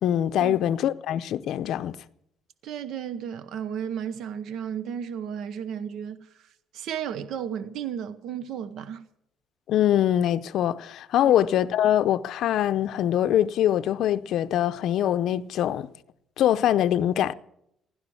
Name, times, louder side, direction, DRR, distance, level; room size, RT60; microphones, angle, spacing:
voice 1, 0.0-2.0 9.7-15.9 16.4-17.3, left 11 dB, 65° left, 0.7 m, -23 dB
voice 2, 2.6-9.0 11.2-11.3, right 8 dB, 70° right, 0.8 m, -34 dB
16.0 x 11.5 x 7.1 m
cardioid pair, 140°, 0 cm